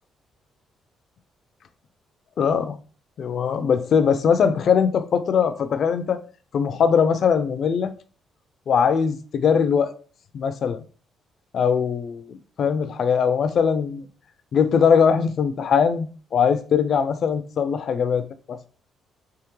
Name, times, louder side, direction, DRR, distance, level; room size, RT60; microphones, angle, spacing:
voice 1, 2.4-2.8 3.2-6.2 6.5-7.9 8.7-9.9 10.3-10.8 11.5-14.1 14.5-18.6, left 6 dB, 60° left, 0.4 m, -21 dB
3.6 x 3.1 x 3.0 m
cardioid pair, 90°, 0 cm